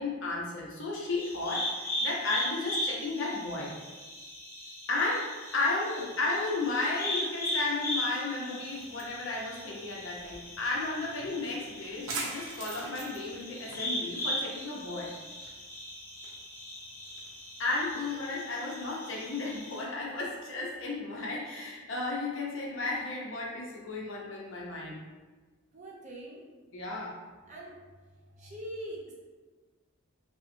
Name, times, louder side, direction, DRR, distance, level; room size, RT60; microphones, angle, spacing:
voice 1, 0.0-3.7 4.9-5.3 5.5-15.1 17.6-25.0 26.7-27.2, left 3 dB, 60° left, -3 dB, 0.7 m, -33 dB
sound 1, 1.2-19.8, left 1 dB, 10° left, 0.6 m, -38 dB
sound 2, 8.7-18.4, right 3 dB, 80° right, 0.7 m, -45 dB
voice 2, 25.7-26.4 27.5-27.7 28.1-29.1, right 1 dB, 35° right, -4 dB, 0.7 m, -43 dB
5.4 x 2.1 x 2.6 m, 1.3 s
head